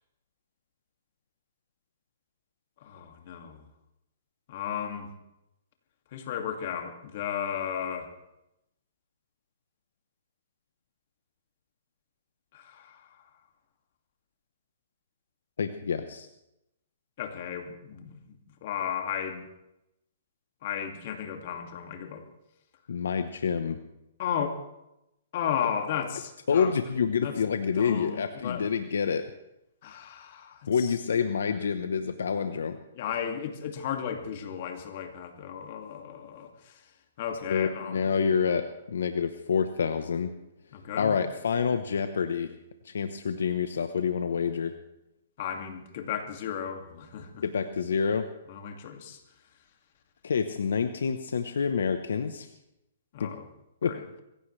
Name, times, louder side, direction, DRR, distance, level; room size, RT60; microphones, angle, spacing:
voice 1, 2.8-3.6 4.5-5.1 6.1-8.1 12.5-13.2 17.2-19.5 20.6-22.2 24.2-24.6 25.3-26.7 27.2-27.4 27.8-28.7 29.8-30.9 32.9-36.9 37.2-38.1 40.7-41.2 45.4-47.4 48.5-49.2 53.1-53.5 53.8-54.0, left 8 dB, 50° left, 4 dB, 2.3 m, -34 dB
voice 2, 15.6-16.3 22.9-23.8 26.5-29.2 30.7-32.8 37.5-40.3 41.0-42.6 42.8-44.8 47.4-48.3 50.2-52.5 53.2-53.3 53.8-53.9, left 6 dB, 80° left, 8 dB, 1.0 m, -27 dB
23.0 x 16.0 x 3.3 m, 0.89 s
hypercardioid pair, 145°, 0 cm